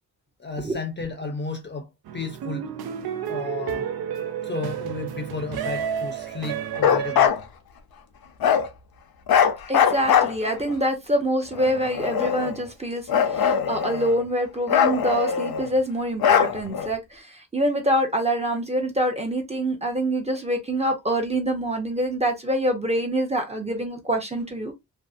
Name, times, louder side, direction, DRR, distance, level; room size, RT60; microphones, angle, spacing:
voice 1, 0.4-2.7 3.3-3.9 4.4-7.4, left 3 dB, 30° left, 0.5 m, -33 dB
sound 1, 2.1-7.3, right 8 dB, 80° right, 0.5 m, -31 dB
Bark, 6.8-7.4 8.4-8.7 9.3-10.7 11.5-12.6 13.1-14.2 14.7-15.7 16.2-16.9, left 8 dB, 80° left, 0.6 m, -21 dB
voice 2, 9.7-24.7, right 1 dB, 20° right, 0.6 m, -25 dB
2.6 x 2.0 x 2.4 m
wide cardioid pair, 140°, 36 cm